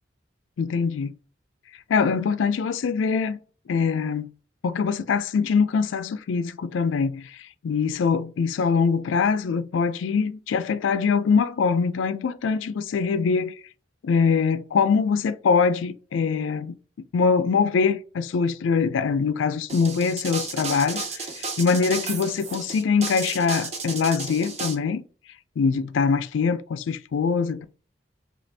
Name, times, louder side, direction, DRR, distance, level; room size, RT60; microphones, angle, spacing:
voice 1, 0.6-1.1 1.9-3.4 3.7-4.3 4.6-7.4 7.6-13.5 14.0-16.7 17.1-25.0 25.6-27.6, left 5 dB, 85° left, 0.4 m, -23 dB
sound 1, 19.7-24.7, right 4 dB, 35° right, 0.5 m, -33 dB
2.9 x 2.5 x 3.2 m
head